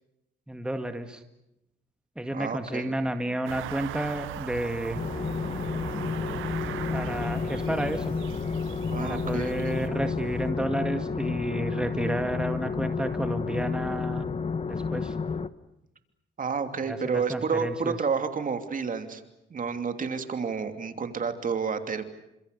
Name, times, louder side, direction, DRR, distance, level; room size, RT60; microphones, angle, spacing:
voice 1, 0.5-1.2 2.2-5.0 6.9-8.2 9.0-14.3 14.6-15.2 16.8-18.0, right 1 dB, 5° right, 7 dB, 2.0 m, -31 dB
voice 2, 2.3-2.9 8.9-9.7 16.4-19.2 19.5-22.0, right 5 dB, 40° right, 7 dB, 3.0 m, -30 dB
sound 1, 3.5-9.9, right 14 dB, 85° right, 1.0 m, -39 dB
Engine, 4.7-10.5, left 5 dB, 65° left, 3.9 m, -46 dB
sound 2, 5.0-15.5, left 5 dB, 30° left, 1.2 m, -31 dB
30.0 x 26.5 x 6.8 m, 0.86 s
cardioid pair, 90°, 20 cm